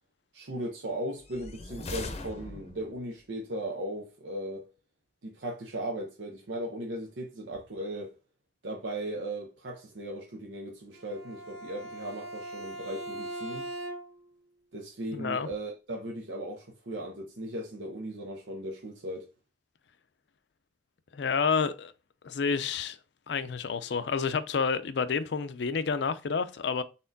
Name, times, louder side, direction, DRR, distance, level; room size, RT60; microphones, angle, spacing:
voice 1, 0.3-4.7 5.2-8.1 8.6-13.7 14.7-19.3, right 1 dB, 90° right, 0.8 m, -37 dB
sound 1, 1.2-3.0, left 2 dB, 35° left, 0.6 m, -40 dB
Bowed string instrument, 10.9-14.3, right 1 dB, 60° right, 1.3 m, -40 dB
voice 2, 15.1-15.5 21.1-21.9 22.2-23.0 23.3-26.8, left 5 dB, 75° left, 0.5 m, -29 dB
4.2 x 3.7 x 2.6 m
head